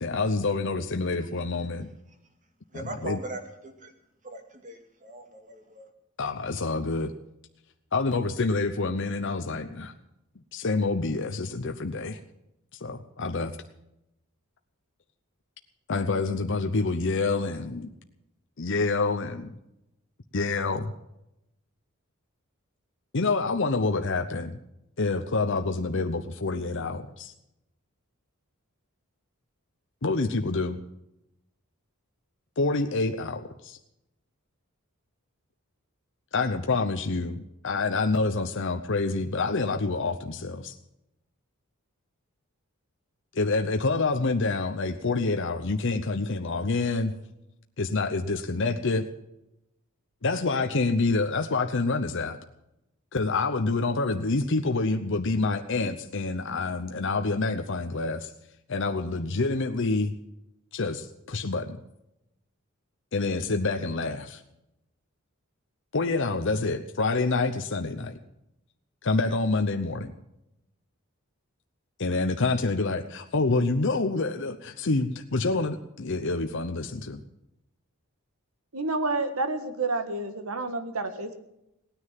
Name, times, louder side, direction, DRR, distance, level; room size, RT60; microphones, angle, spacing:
voice 1, 0.0-1.9 2.7-3.2 6.2-7.1 7.9-9.9 10.5-12.2 12.8-13.6 15.9-17.9 18.6-19.5 20.3-20.9 23.1-24.6 25.0-27.3 30.0-30.8 32.6-33.8 36.3-40.8 43.3-47.1 47.8-49.1 50.2-52.4 53.1-58.3 58.7-60.1 60.7-61.8 63.1-64.4 65.9-68.2 69.0-70.1 72.0-77.2, left 3 dB, 60° left, 6 dB, 0.8 m, -27 dB
voice 2, 2.7-3.9 4.2-5.9, right 1 dB, 35° right, 5 dB, 2.2 m, -40 dB
voice 3, 78.7-81.3, right 3 dB, 85° right, 9 dB, 1.7 m, -29 dB
18.0 x 9.7 x 7.5 m, 0.87 s
head